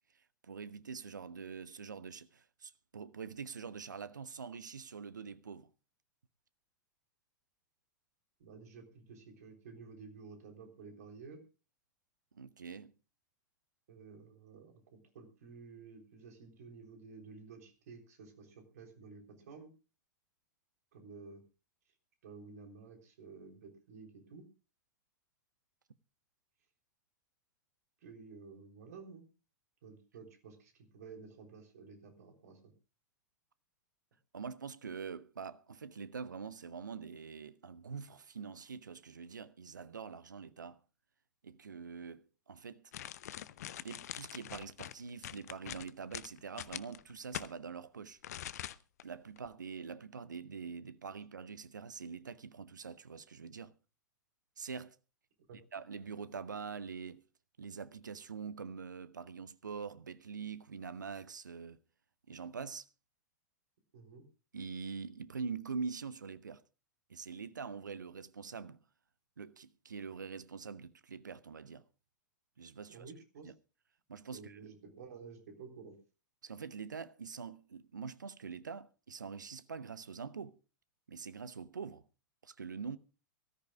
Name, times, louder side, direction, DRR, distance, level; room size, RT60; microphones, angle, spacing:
voice 1, 0.4-5.7 12.3-12.9 34.3-40.8 41.4-42.9 43.8-48.2 49.0-53.7 54.6-55.0 55.7-57.2 57.6-61.8 62.3-62.9 64.5-66.6 67.1-68.8 69.4-71.8 72.6-73.1 73.4-73.5 74.1-74.7 76.4-80.6 81.1-82.0 82.4-83.0, right 5 dB, 75° right, 0.8 m, -44 dB
voice 2, 8.4-11.4 13.9-19.7 20.9-21.4 22.2-24.5 28.0-29.3 29.8-32.7 55.5-55.6 63.9-64.2 72.9-73.5 74.3-76.0, right 5 dB, 55° right, 3.5 m, -52 dB
sound 1, 42.9-47.5 48.2-49.0 49.4-49.5, left 12 dB, 55° left, 0.7 m, -44 dB
23.5 x 14.0 x 2.3 m
figure-of-eight pair, 100°, 10 cm